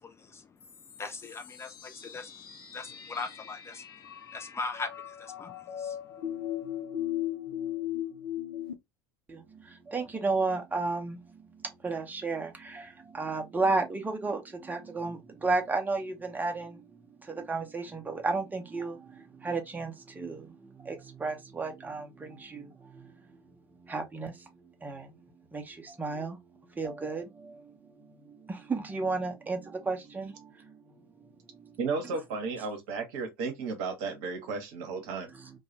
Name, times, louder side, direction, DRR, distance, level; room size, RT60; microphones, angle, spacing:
voice 1, 0.0-6.1, left 4 dB, 20° left, 0.4 m, -41 dB
sound 1, 0.6-8.7, left 11 dB, 70° left, 0.5 m, -38 dB
voice 2, 9.3-23.1 23.8-24.5 24.8-25.1 25.5-26.4 26.8-27.6 28.2-30.8 31.6-31.7 35.4-35.5, right 3 dB, 15° right, 0.8 m, -33 dB
voice 3, 31.8-35.3, right 4 dB, 55° right, 0.9 m, -34 dB
2.3 x 2.2 x 2.9 m
figure-of-eight pair, 70°, 13 cm